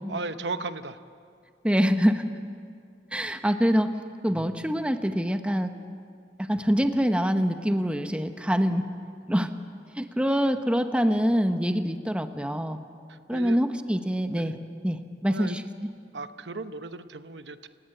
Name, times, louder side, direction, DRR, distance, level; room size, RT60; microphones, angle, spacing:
voice 1, 0.1-1.0 13.1-13.6 14.2-14.5 15.3-15.6 16.1-17.7, right 3 dB, 90° right, 11 dB, 0.9 m, -36 dB
voice 2, 1.6-2.3 3.1-4.0 4.2-5.7 6.4-8.9 9.3-9.5 10.0-12.8 13.3-14.6 14.8-15.9, equal, 5° right, 8 dB, 0.9 m, -25 dB
29.0 x 17.5 x 7.9 m, 2.3 s
head